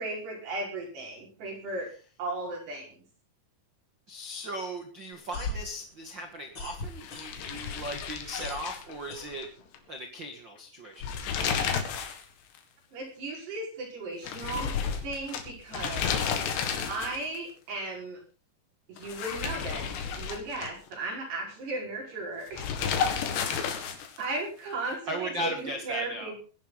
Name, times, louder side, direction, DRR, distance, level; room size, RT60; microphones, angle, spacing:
voice 1, 0.0-1.9 2.2-3.0 12.9-14.7 15.0-16.2 16.9-18.2 18.9-19.9 20.2-22.9 23.4-23.7 24.2-26.4, right 2 dB, 65° right, -1 dB, 7.1 m, -36 dB
voice 2, 4.1-9.5 9.9-11.1 16.0-16.2 23.5-24.1 24.8-26.3, equal, 85° right, 4 dB, 1.0 m, -38 dB
sound 1, 5.1-7.7 8.0-9.9, left 2 dB, 35° left, 2.9 m, -39 dB
sound 2, 7.0-9.5 9.7-9.8 10.8-12.2 12.5-12.6 14.2-17.4 19.0-20.9 22.5-24.2, left 7 dB, 75° left, 4.0 m, -32 dB
21.5 x 11.0 x 4.0 m, 0.37 s
omnidirectional pair, 5.2 m